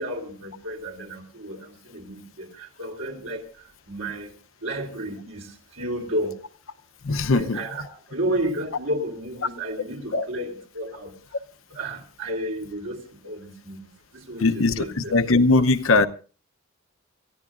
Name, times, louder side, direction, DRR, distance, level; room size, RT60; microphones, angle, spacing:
voice 1, 0.0-3.4 3.9-4.3 4.6-5.5 5.8-6.4 7.3-11.1 11.7-13.8 14.1-15.1, right 1 dB, 90° right, 2 dB, 3.9 m, -32 dB
voice 2, 7.0-7.6 10.1-10.2 14.4-16.1, left 3 dB, 85° left, 10 dB, 0.8 m, -20 dB
28.0 x 14.5 x 2.5 m, 0.36 s
head